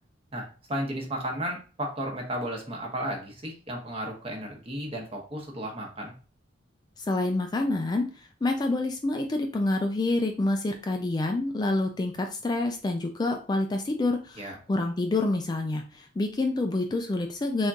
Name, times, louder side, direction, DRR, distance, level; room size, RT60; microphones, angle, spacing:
voice 1, 0.3-6.1 14.4-14.5, right 1 dB, 30° right, 0 dB, 0.9 m, -34 dB
voice 2, 7.0-8.1 8.4-17.7, left 2 dB, 20° left, 4 dB, 0.3 m, -27 dB
3.6 x 3.5 x 2.6 m, 0.37 s
head